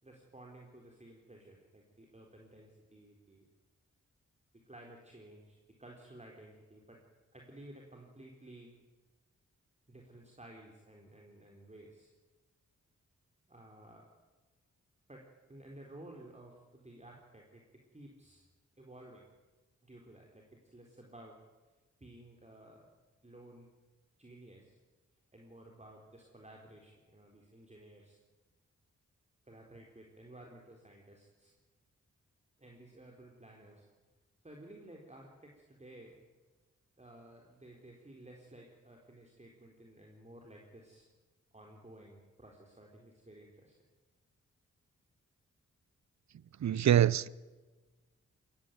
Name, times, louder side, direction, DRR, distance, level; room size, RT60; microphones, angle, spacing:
voice 1, 0.0-3.5 4.5-7.0 7.3-8.7 9.9-12.1 13.5-14.1 15.1-15.2 15.5-17.6 17.9-18.4 18.8-19.3 19.8-21.4 22.0-22.9 23.2-23.7 24.2-24.8 25.3-28.2 29.4-31.5 32.6-33.9 34.4-36.2 37.0-41.1 41.5-43.7, right 1 dB, 20° right, 4.1 m, -54 dB
voice 2, 46.6-47.3, right 10 dB, 60° right, 0.7 m, -25 dB
19.5 x 16.0 x 9.4 m
supercardioid pair, 45°, 32 cm